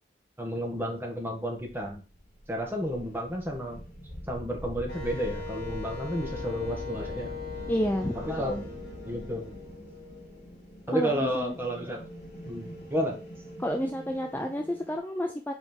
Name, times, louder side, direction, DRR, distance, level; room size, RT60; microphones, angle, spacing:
voice 1, 0.4-2.0 2.5-3.8 4.3-7.4 8.1-8.6 9.0-9.5 10.9-12.0 12.4-13.2, equal, 15° right, 0 dB, 1.6 m, -31 dB
sound 1, 1.6-15.0, equal, 35° left, 3.6 m, -43 dB
Wind instrument woodwind instrument, 4.9-10.7, left 4 dB, 55° left, 2.9 m, -41 dB
voice 2, 7.7-8.7 10.9-11.5 13.6-15.5, equal, 10° left, 3 dB, 0.5 m, -30 dB
5.6 x 4.4 x 4.4 m, 0.35 s
head